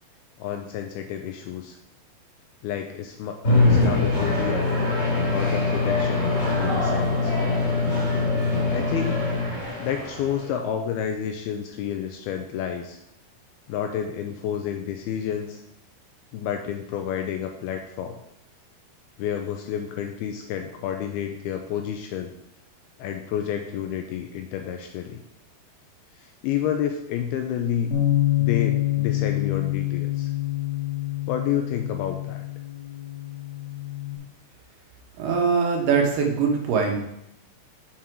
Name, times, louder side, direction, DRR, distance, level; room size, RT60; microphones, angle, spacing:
voice 1, 0.4-1.8 2.6-4.7 5.3-7.3 8.7-9.2 9.8-13.0 13.7-15.6 16.3-18.2 19.2-22.3 23.0-25.2 26.2-27.9 28.4-30.3 31.3-32.4, left 9 dB, 85° left, 5 dB, 2.3 m, -30 dB
sound 1, 3.4-10.5, left 3 dB, 25° left, 2.3 m, -23 dB
Bass guitar, 27.9-34.2, left 15 dB, 60° left, 3.2 m, -26 dB
voice 2, 35.2-37.0, right 5 dB, 70° right, 1 dB, 3.1 m, -22 dB
7.5 x 7.2 x 4.5 m, 0.80 s
omnidirectional pair, 4.9 m